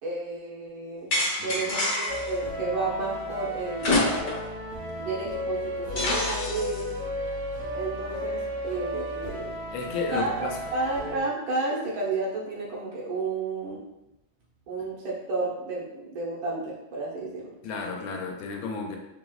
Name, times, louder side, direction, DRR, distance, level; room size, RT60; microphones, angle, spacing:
voice 1, 0.0-4.2 5.0-6.9 7.7-9.5 10.1-13.8 14.7-17.5, right 3 dB, 75° right, -4 dB, 1.7 m, -32 dB
sound 1, 1.1-2.3 3.8-4.5 4.9-5.0 6.0-6.8, left 2 dB, 55° left, 1.3 m, -27 dB
voice 2, 1.4-1.8 9.7-10.6 17.6-19.0, left 4 dB, 75° left, 1 dB, 1.4 m, -33 dB
sound 2, 2.1-11.2, equal, 90° right, 1.9 m, -34 dB
4.7 x 3.0 x 2.3 m, 0.91 s
omnidirectional pair, 2.3 m